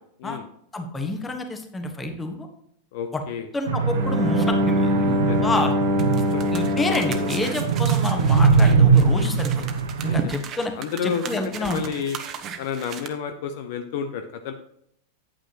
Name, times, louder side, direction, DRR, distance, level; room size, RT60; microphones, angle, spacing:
voice 1, 0.7-2.5 3.1-3.2 3.5-5.7 6.5-9.7 10.0-10.7 11.0-11.8, left 2 dB, 15° left, 5 dB, 1.3 m, -28 dB
voice 2, 2.9-3.5 5.3-5.4 6.3-6.4 6.7-6.8 10.0-10.3 10.8-12.2 12.6-14.5, left 7 dB, 50° left, 7 dB, 0.6 m, -30 dB
sound 1, 3.7-10.2, right 5 dB, 65° right, 0.8 m, -21 dB
Bowed string instrument, 3.9-8.8, left 1 dB, 15° right, 1.3 m, -24 dB
sound 2, 6.0-13.1, right 6 dB, 30° right, 0.9 m, -37 dB
9.2 x 8.7 x 3.0 m, 0.70 s
figure-of-eight pair, 90°, 0 cm